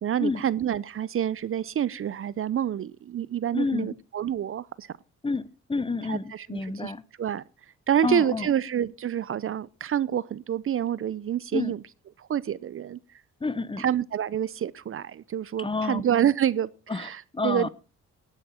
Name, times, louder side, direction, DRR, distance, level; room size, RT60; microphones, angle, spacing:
voice 1, 0.0-4.9 6.1-6.9 7.2-7.4 7.9-11.8 12.2-13.0 13.8-17.7, right 9 dB, 45° right, 0.6 m, -27 dB
voice 2, 3.5-4.0 5.2-7.0 8.0-8.5 11.5-11.7 13.4-13.8 15.6-16.0 16.9-17.1 17.3-17.7, left 3 dB, 15° left, 0.8 m, -29 dB
17.0 x 10.0 x 4.3 m
cardioid pair, 90°, 30 cm